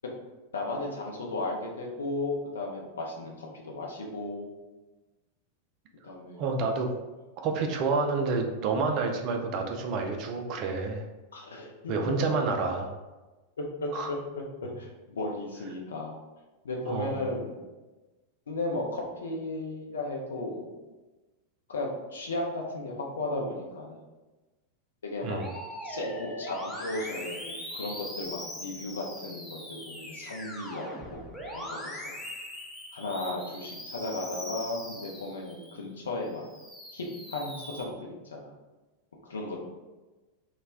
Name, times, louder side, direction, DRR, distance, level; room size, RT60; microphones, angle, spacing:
voice 1, 0.5-4.5 6.0-6.4 11.3-12.2 13.6-14.2 14.6-16.2 16.6-17.6 18.5-20.7 21.7-24.0 25.0-25.4 25.8-30.8 31.1-32.1 32.9-36.4 36.9-38.5 39.2-39.6, left 2 dB, 70° left, -1 dB, 0.6 m, -35 dB
voice 2, 6.4-6.9 7.4-11.0 11.9-12.9 13.9-14.1 16.9-17.3 25.2-25.5, right 4 dB, 40° right, 3 dB, 0.4 m, -29 dB
Musical instrument, 25.4-35.8 36.3-37.8, equal, 5° left, 0.6 m, -41 dB
2.3 x 2.1 x 3.3 m, 1.2 s
figure-of-eight pair, 90°, 0 cm